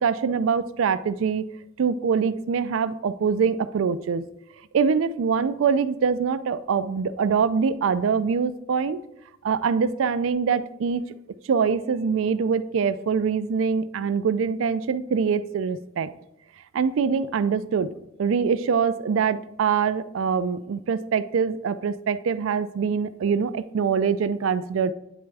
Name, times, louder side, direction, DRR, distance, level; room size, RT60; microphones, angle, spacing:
voice 1, 0.0-1.4 1.8-4.2 4.7-9.0 9.4-11.0 11.5-16.1 16.7-17.9 18.2-24.9, right 6 dB, 75° right, 13 dB, 0.4 m, -24 dB
9.1 x 3.4 x 3.3 m, 0.85 s
head